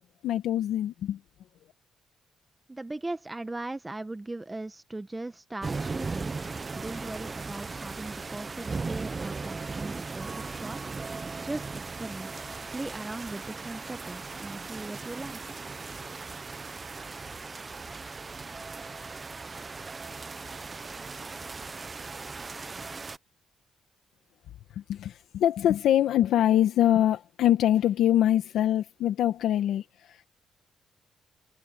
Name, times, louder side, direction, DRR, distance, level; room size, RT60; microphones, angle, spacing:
voice 1, 0.2-1.2 24.7-30.3, left 11 dB, 80° left, 1.5 m, -24 dB
voice 2, 2.7-6.4 6.7-10.8 11.1-12.3 12.7-15.6, right 2 dB, 20° right, 1.2 m, -39 dB
sound 1, 5.6-23.2, right 4 dB, 35° right, 0.7 m, -38 dB
cardioid pair, 75°, 0 cm